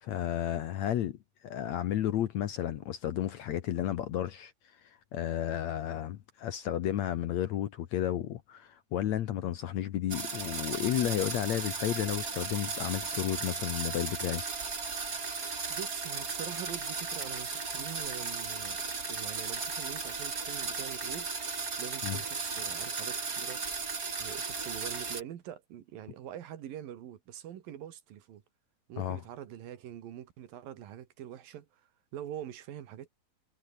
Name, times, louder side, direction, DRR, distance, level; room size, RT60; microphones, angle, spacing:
voice 1, 0.0-4.5 4.8-14.4 22.0-22.2 29.0-29.2, left 11 dB, 65° left, 2.0 m, -32 dB
sound 1, 10.1-25.2, right 4 dB, 25° right, 2.4 m, -36 dB
voice 2, 15.7-18.8 19.1-21.3 21.8-23.6 24.2-28.4 28.9-33.1, right 10 dB, 75° right, 3.4 m, -44 dB
omnidirectional pair, 4.2 m